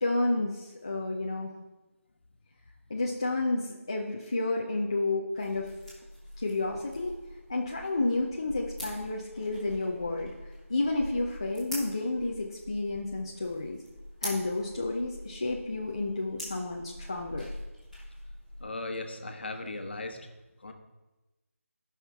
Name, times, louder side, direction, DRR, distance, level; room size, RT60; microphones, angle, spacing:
voice 1, 0.0-1.5 2.9-5.7 6.4-7.2 7.5-13.8 14.2-17.4, left 2 dB, 20° left, -1 dB, 0.4 m, -31 dB
sound 1, 5.3-18.7, left 1 dB, ahead, 1.4 m, -44 dB
voice 2, 18.6-20.3 20.6-20.7, left 2 dB, 45° left, 5 dB, 1.1 m, -37 dB
15.5 x 5.7 x 3.5 m, 1.1 s
figure-of-eight pair, 175°, 8 cm